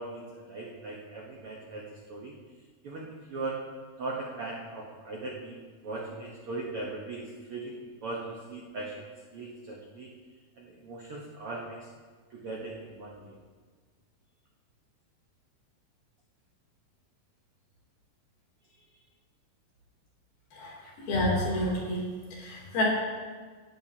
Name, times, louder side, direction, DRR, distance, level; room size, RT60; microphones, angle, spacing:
voice 1, 0.0-2.3 2.8-3.6 4.0-9.0 9.3-10.1 10.6-11.9 12.3-13.3, right 2 dB, 85° right, -2 dB, 1.2 m, -39 dB
voice 2, 20.5-22.0 22.3-22.8, left 1 dB, 75° left, -4 dB, 5.0 m, -29 dB
17.5 x 10.5 x 2.9 m, 1.5 s
omnidirectional pair, 4.4 m